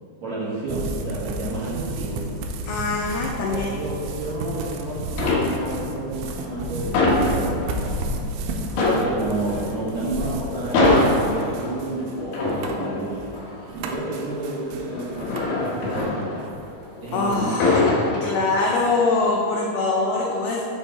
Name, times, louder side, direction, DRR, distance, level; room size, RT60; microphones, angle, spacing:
voice 1, 0.2-2.2 3.5-8.1 8.7-13.2 13.7-16.2 17.0-17.4, right 2 dB, 55° right, -10 dB, 2.3 m, -30 dB
sound 1, 0.7-16.1 16.4-17.4, right 2 dB, 90° right, 3.0 m, -32 dB
voice 2, 2.7-3.7 17.1-20.6, left 3 dB, 85° left, -2 dB, 2.2 m, -23 dB
sound 2, 4.1-4.7 5.1-5.9 6.3-8.0 8.3-8.4 8.7-17.0 17.4-18.8 19.2-19.5, left 2 dB, 65° left, 2.6 m, -24 dB
7.3 x 7.2 x 4.1 m, 2.5 s
omnidirectional pair, 5.3 m